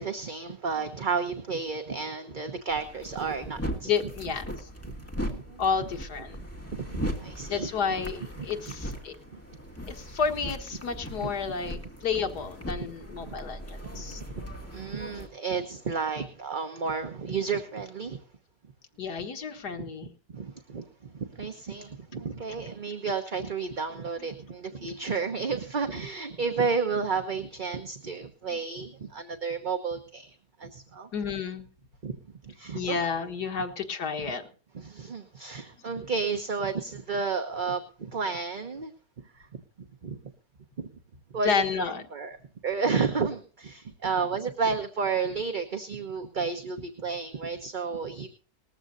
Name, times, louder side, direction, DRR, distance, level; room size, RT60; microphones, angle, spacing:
voice 1, 0.0-3.9 5.3-5.6 6.7-7.7 8.4-8.5 9.3-9.4 11.2-11.3 12.8-12.9 13.3-13.4 13.8-18.2 19.8-19.9 20.3-31.1 32.0-32.2 32.4-33.0 34.7-38.9 39.3-39.6 40.0-40.2 41.3-42.4 42.6-48.3, right 5 dB, 35° right, 6 dB, 1.0 m, -32 dB
sound 1, 2.7-15.3, equal, 10° left, 2.0 m, -38 dB
voice 2, 3.8-4.4 5.6-6.4 7.5-9.1 9.9-14.2 19.0-20.1 31.1-31.6 32.7-34.4 41.5-42.0, left 6 dB, 80° left, 5 dB, 2.1 m, -30 dB
20.0 x 14.0 x 2.6 m, 0.40 s
omnidirectional pair, 1.7 m